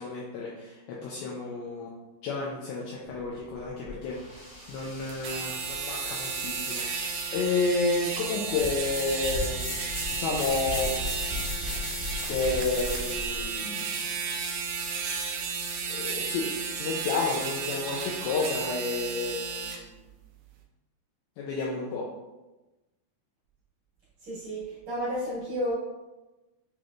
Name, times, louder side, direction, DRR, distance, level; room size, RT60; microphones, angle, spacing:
voice 1, 0.0-4.4 4.7-9.8 10.1-11.5 12.3-14.0 15.9-19.9 21.4-22.0, left 3 dB, 90° left, -3 dB, 2.1 m, -31 dB
sound 1, 3.1-13.4, left 1 dB, 65° left, 1.6 m, -37 dB
sound 2, 5.1-19.8, right 5 dB, 85° right, 2.1 m, -33 dB
voice 2, 24.2-25.7, equal, 55° right, -10 dB, 2.1 m, -32 dB
7.5 x 3.0 x 2.3 m, 1.1 s
omnidirectional pair, 4.9 m